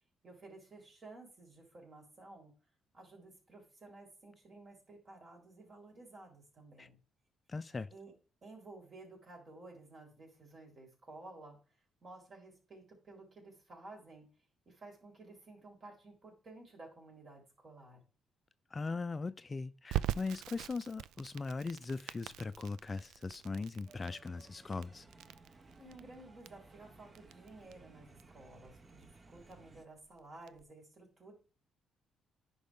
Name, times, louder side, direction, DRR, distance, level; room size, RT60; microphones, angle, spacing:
voice 1, 0.2-2.5 2.9-7.0 7.9-8.1 8.4-11.6 12.0-14.2 14.7-18.0 25.8-31.3, right 2 dB, 45° right, 4.3 m, -54 dB
voice 2, 7.5-7.9 18.7-25.1, left 4 dB, 30° left, 0.4 m, -39 dB
Crackle, 19.9-30.6, right 12 dB, 85° right, 0.3 m, -43 dB
sound 1, 23.9-29.9, right 3 dB, 30° right, 0.9 m, -59 dB
10.5 x 5.4 x 3.7 m
cardioid pair, 90°, 0 cm